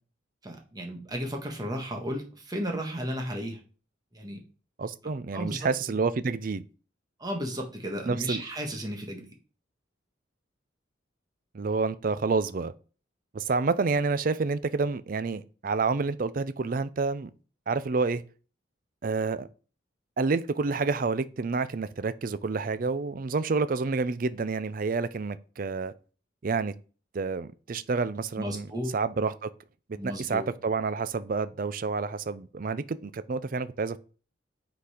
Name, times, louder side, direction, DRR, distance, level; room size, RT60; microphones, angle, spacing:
voice 1, 0.4-3.6 4.1-4.4 5.3-6.0 7.2-9.3 28.3-28.9 29.9-30.4, equal, 20° right, 1.4 m, -34 dB
voice 2, 4.8-6.6 8.1-8.4 11.5-12.7 13.3-17.3 17.7-18.2 19.0-19.5 20.2-25.9 26.4-26.7 27.1-28.7 28.9-29.5 30.0-34.0, right 4 dB, 45° right, 0.4 m, -29 dB
8.2 x 4.0 x 5.0 m
head